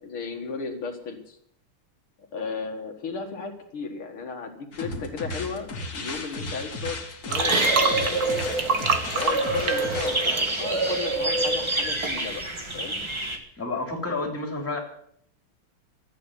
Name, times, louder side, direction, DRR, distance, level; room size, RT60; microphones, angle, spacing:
voice 1, 0.0-1.4 2.2-7.0 7.2-8.7 9.1-13.0, left 5 dB, 80° left, 2 dB, 2.7 m, -35 dB
sound 1, 4.7-10.3, left 2 dB, 45° left, 2.4 m, -35 dB
sound 2, 7.3-11.8 12.0-12.2, right 4 dB, 45° right, 1.9 m, -28 dB
sound 3, 7.4-13.4, right 2 dB, 15° right, 1.7 m, -27 dB
voice 2, 13.6-14.8, left 3 dB, 5° left, 2 dB, 3.0 m, -30 dB
13.0 x 8.7 x 9.9 m, 0.69 s
omnidirectional pair, 2.3 m